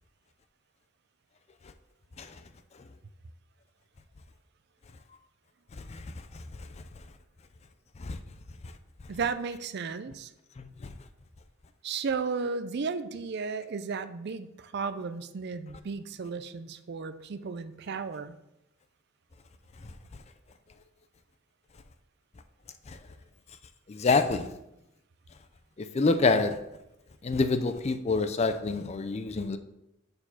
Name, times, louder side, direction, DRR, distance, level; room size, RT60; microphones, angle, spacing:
voice 1, 9.1-10.3 11.8-18.4, right 5 dB, 55° right, 0.4 m, -34 dB
voice 2, 23.9-24.5 25.8-26.6 27.2-29.6, left 3 dB, 30° left, 0.4 m, -27 dB
6.7 x 4.6 x 5.7 m
head